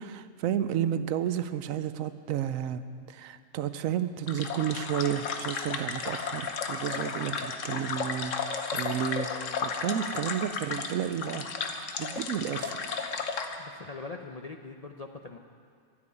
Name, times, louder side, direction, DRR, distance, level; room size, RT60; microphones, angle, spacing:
voice 1, 0.0-2.8 3.1-9.3 9.6-11.5 12.0-13.0, right 10 dB, 85° right, 12 dB, 1.0 m, -32 dB
sound 1, 4.3-13.5, left 5 dB, 70° left, 1.2 m, -34 dB
voice 2, 13.6-15.4, left 4 dB, 50° left, 4 dB, 0.5 m, -42 dB
13.5 x 7.8 x 9.7 m, 2.2 s
omnidirectional pair, 1.4 m